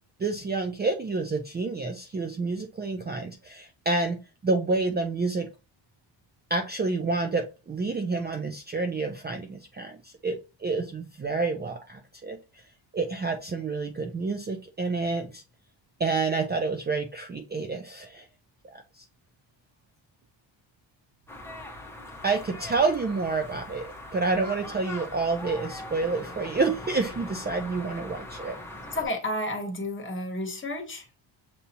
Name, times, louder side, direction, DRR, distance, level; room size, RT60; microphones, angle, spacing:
voice 1, 0.2-5.5 6.5-12.4 12.9-15.4 16.0-18.3 18.7-19.0 22.2-28.6, right 3 dB, 20° right, 0.5 m, -29 dB
sound 1, 21.3-29.0, left 1 dB, 5° left, 1.0 m, -41 dB
voice 2, 28.9-31.2, left 1 dB, 25° left, 1.1 m, -31 dB
6.9 x 2.8 x 2.8 m
cardioid pair, 135°, 47 cm